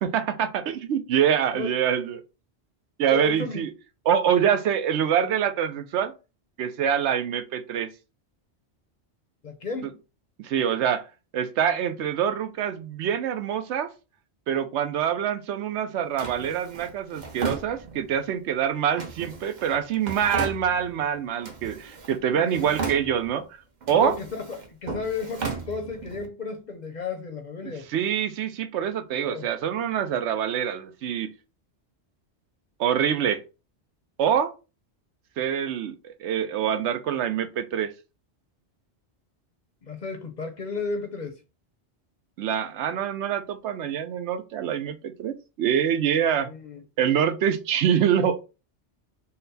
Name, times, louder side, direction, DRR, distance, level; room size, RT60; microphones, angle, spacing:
voice 1, 0.0-2.2 3.0-3.7 4.1-6.1 6.6-7.9 10.4-11.0 11.3-13.9 14.5-23.6 23.9-24.1 27.6-31.3 32.8-33.4 34.2-34.5 35.4-37.9 42.4-46.5 47.0-48.4, right 8 dB, 80° right, 0.9 m, -25 dB
voice 2, 3.1-3.6 9.4-10.0 22.3-22.7 23.9-27.9 29.1-29.5 39.8-41.4 46.4-46.8, left 4 dB, 50° left, 0.6 m, -33 dB
Drawer open or close, 16.2-18.3 19.0-21.1 21.4-22.2 22.5-23.4 23.8-26.3, right 5 dB, 45° right, 0.8 m, -35 dB
4.1 x 2.1 x 3.9 m
omnidirectional pair, 1.2 m